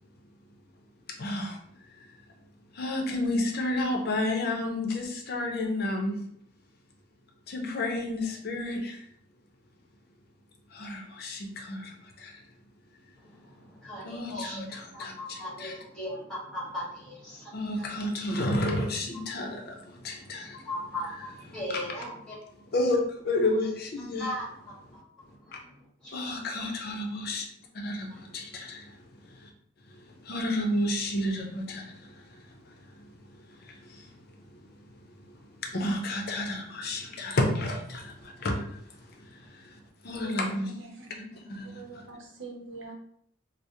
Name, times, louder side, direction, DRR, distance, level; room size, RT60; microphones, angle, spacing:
voice 1, 1.1-1.6 2.7-6.2 7.5-9.0 10.7-12.4 14.0-15.7 17.5-20.6 21.7-21.8 22.7-23.0 23.2-24.3 26.1-27.4 27.7-28.9 29.3-29.5 29.9-33.1 33.6-34.1 35.2-35.3 35.6-38.8 39.3-40.7 41.1-42.0, left 1 dB, 55° left, 2 dB, 0.6 m, -31 dB
voice 2, 13.2-18.5 20.2-22.4 24.2-26.4 28.1-28.2, left 1 dB, 5° left, -7 dB, 1.3 m, -39 dB
voice 3, 40.2-40.5 40.8-41.1 41.7-42.9, right 4 dB, 80° right, 1 dB, 0.8 m, -43 dB
4.7 x 2.0 x 2.7 m, 0.67 s
head